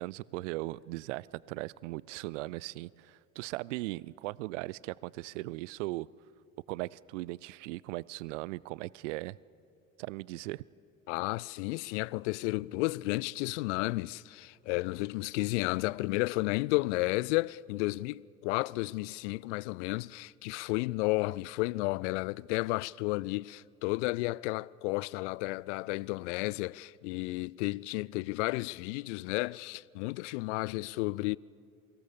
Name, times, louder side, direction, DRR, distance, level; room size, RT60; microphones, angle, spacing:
voice 1, 0.0-6.1 6.7-9.4 10.0-10.6, right 20 dB, 65° right, 0.5 m, -38 dB
voice 2, 11.1-31.4, left 22 dB, 60° left, 0.5 m, -32 dB
28.0 x 24.0 x 6.9 m
figure-of-eight pair, 50°, 39 cm